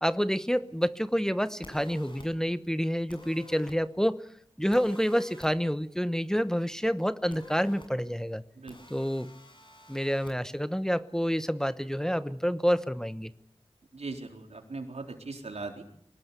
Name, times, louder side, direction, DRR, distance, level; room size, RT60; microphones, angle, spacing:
voice 1, 0.0-4.2 4.6-8.4 8.9-9.3 9.9-13.3, equal, 5° left, 12 dB, 1.0 m, -28 dB
sound 1, 1.6-2.3 3.1-3.8 4.7-5.5 7.3-7.9 8.7-10.3, left 1 dB, 50° left, 7.8 m, -49 dB
voice 2, 13.9-15.8, right 3 dB, 85° right, 3 dB, 3.9 m, -39 dB
23.5 x 19.5 x 8.3 m, 0.67 s
wide cardioid pair, 45°, 11 cm